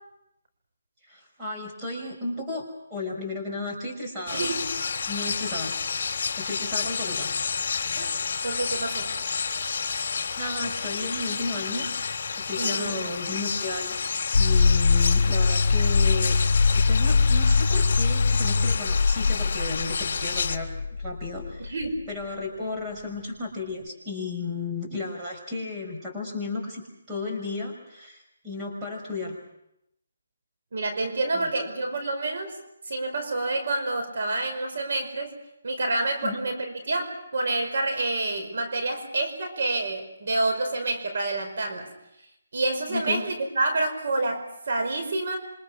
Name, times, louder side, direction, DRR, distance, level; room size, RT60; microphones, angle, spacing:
voice 1, 1.1-4.4 5.1-5.8 6.4-7.3 10.4-11.9 12.4-14.0 14.3-16.3 16.7-20.7 21.0-21.7 22.1-29.4 31.3-31.7 36.2-36.4 42.9-43.2, left 3 dB, 15° right, -2 dB, 6.1 m, -34 dB
sound 1, 4.3-20.6, left 5 dB, 50° left, 2.9 m, -30 dB
voice 2, 4.3-4.6 7.9-8.2 8.4-9.1 12.6-13.0 21.6-22.0 30.7-32.5 32.8-35.3 35.6-41.9 42.5-45.4, right 2 dB, 60° right, 6 dB, 5.1 m, -28 dB
sound 2, 14.3-22.0, left 4 dB, 75° left, 1.0 m, -22 dB
28.0 x 25.5 x 6.2 m, 0.80 s
hypercardioid pair, 165°, 0 cm